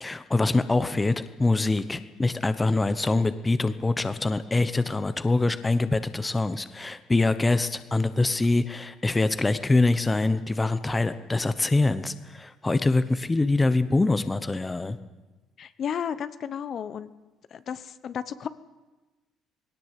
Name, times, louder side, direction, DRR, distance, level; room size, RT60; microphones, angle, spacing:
voice 1, 0.0-15.0, left 2 dB, 15° left, 12 dB, 0.9 m, -24 dB
voice 2, 15.6-17.1 17.5-18.5, left 8 dB, 45° left, 13 dB, 0.9 m, -33 dB
19.5 x 17.5 x 8.2 m, 1.1 s
cardioid pair, 125°, 0 cm